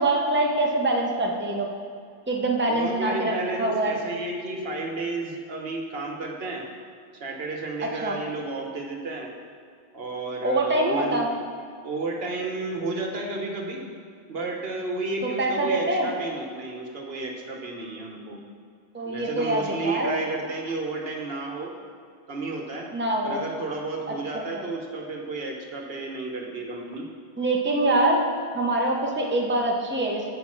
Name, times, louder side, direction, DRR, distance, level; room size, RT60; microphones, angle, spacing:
voice 1, 0.0-1.7 2.3-3.3 3.6-4.0 7.8-8.2 10.4-11.3 15.2-16.1 18.9-20.2 22.9-23.4 27.4-28.2 28.5-30.3, right 2 dB, 10° right, -1 dB, 0.9 m, -24 dB
voice 2, 2.7-6.6 7.1-9.3 9.9-11.3 11.8-13.8 14.3-18.4 19.0-21.7 22.3-22.9 23.2-27.1, right 3 dB, 65° right, 1 dB, 1.3 m, -32 dB
8.6 x 5.2 x 6.2 m, 2.2 s
omnidirectional pair, 1.1 m